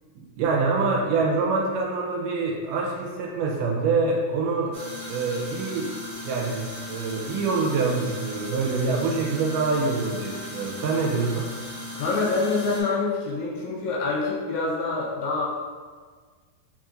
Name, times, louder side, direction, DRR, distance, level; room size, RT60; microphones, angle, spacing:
voice 1, 0.2-4.8 5.1-5.9 6.2-11.5, right 4 dB, 85° right, -1 dB, 2.2 m, -25 dB
sound 1, 4.7-12.8, left 1 dB, 55° right, 1.8 m, -37 dB
voice 2, 12.0-15.5, left 3 dB, 75° left, -5 dB, 1.9 m, -26 dB
4.8 x 4.4 x 2.4 m, 1.6 s
omnidirectional pair, 3.8 m